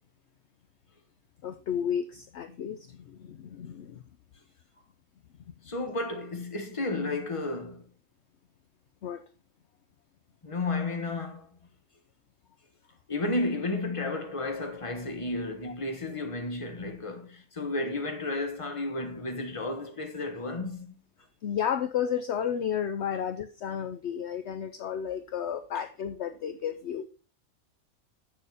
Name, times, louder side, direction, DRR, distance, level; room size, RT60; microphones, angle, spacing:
voice 1, 1.4-4.0 9.0-9.2 21.4-27.0, left 8 dB, 60° left, 0.9 m, -32 dB
voice 2, 5.6-7.8 10.4-11.5 13.1-20.9, left 2 dB, 25° left, 1.3 m, -32 dB
8.6 x 6.8 x 4.9 m
omnidirectional pair, 1.5 m